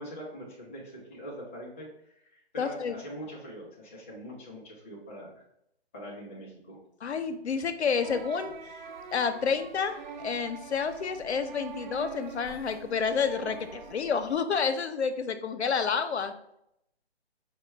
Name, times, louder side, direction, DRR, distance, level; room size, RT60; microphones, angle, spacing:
voice 1, 0.0-1.9 2.2-5.4 5.9-6.8, equal, 15° left, -5 dB, 0.5 m, -43 dB
voice 2, 2.6-3.0 7.0-16.3, left 6 dB, 85° left, 8 dB, 0.6 m, -30 dB
sound 1, 8.0-14.4, right 5 dB, 45° right, 0.5 m, -44 dB
4.4 x 2.2 x 4.3 m, 0.76 s
hypercardioid pair, 155°, 32 cm